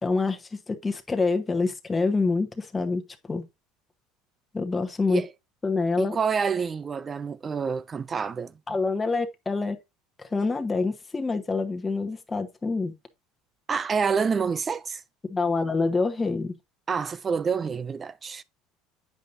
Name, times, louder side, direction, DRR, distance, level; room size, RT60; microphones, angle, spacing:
voice 1, 0.0-3.0 3.3-3.4 4.5-5.2 5.6-6.2 8.7-9.8 10.2-12.9 15.3-16.5, left 3 dB, 20° left, 1.0 m, -26 dB
voice 2, 6.0-8.5 13.7-15.0 16.9-18.4, right 5 dB, 30° right, 0.4 m, -27 dB
8.4 x 5.2 x 2.6 m
hypercardioid pair, 80°, 0 cm